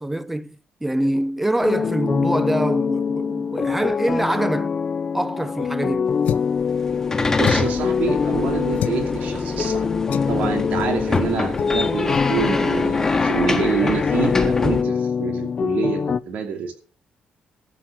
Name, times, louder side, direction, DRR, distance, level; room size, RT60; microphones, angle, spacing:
voice 1, 0.0-4.7 5.1-6.1, right 1 dB, 10° right, 0.7 m, -24 dB
sound 1, 1.6-16.2, left 6 dB, 35° left, 0.5 m, -24 dB
sound 2, 6.2-6.6 7.4-7.8 8.8-9.0 10.1-10.4 11.1-11.3 11.6-11.7 12.1-12.3, left 10 dB, 75° left, 0.6 m, -28 dB
sound 3, 6.5-14.8, left 3 dB, 15° left, 1.4 m, -25 dB
voice 2, 7.4-9.9 10.3-16.7, right 6 dB, 80° right, 2.6 m, -27 dB
14.0 x 7.9 x 5.8 m
cardioid pair, 145°, 3 cm